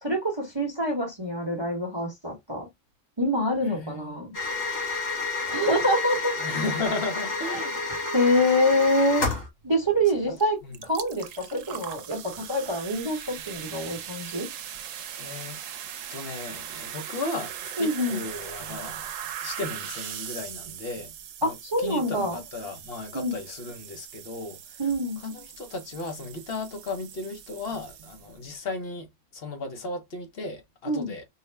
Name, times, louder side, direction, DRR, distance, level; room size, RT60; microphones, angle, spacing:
voice 1, 0.0-2.7 3.2-4.3 5.5-6.3 7.5-7.6 8.1-9.3 9.6-14.5 17.8-18.2 21.4-22.4 23.1-23.4 24.8-25.2 30.8-31.1, equal, 25° right, 0.9 m, -26 dB
voice 2, 3.6-4.2 6.4-7.8 10.1-10.8 15.2-15.6 16.1-19.1 19.4-21.1 21.4-24.8 25.2-29.1 29.3-31.2, left 3 dB, 50° left, 1.1 m, -35 dB
sound 1, 4.3-9.5, left 3 dB, 90° left, 2.0 m, -30 dB
sound 2, 10.4-10.5 10.7-28.5, right 9 dB, 80° right, 1.0 m, -40 dB
4.6 x 2.1 x 3.3 m
omnidirectional pair, 1.3 m